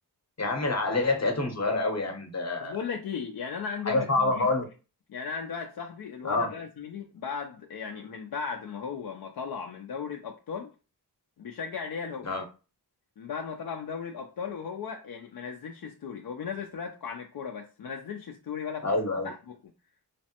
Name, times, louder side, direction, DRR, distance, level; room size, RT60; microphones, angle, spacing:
voice 1, 0.4-2.8 3.8-4.6 6.2-6.5 12.2-12.4 18.8-19.3, left 2 dB, 40° left, 0.9 m, -27 dB
voice 2, 2.6-4.5 5.1-10.7 11.4-12.3 13.2-19.5, left 6 dB, 60° left, 0.5 m, -36 dB
3.2 x 2.0 x 2.8 m
cardioid pair, 60°, 40 cm